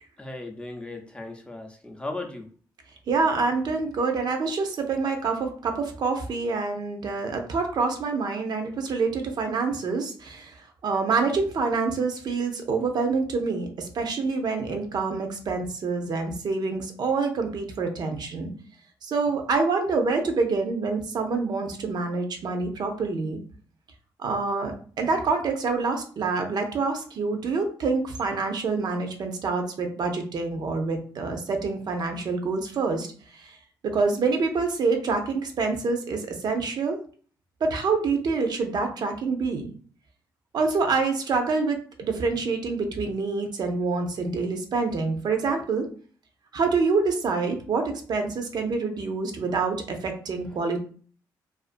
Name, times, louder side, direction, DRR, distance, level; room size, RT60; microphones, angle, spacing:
voice 1, 0.2-2.5, left 2 dB, 15° left, 3 dB, 0.5 m, -36 dB
voice 2, 3.1-18.5 19.0-23.4 24.2-33.1 33.3-33.6 33.8-37.0 37.6-39.7 40.5-45.9 46.5-50.8, right 4 dB, 65° right, 5 dB, 0.5 m, -26 dB
2.4 x 2.4 x 2.5 m, 0.43 s
cardioid pair, 85°, 8 cm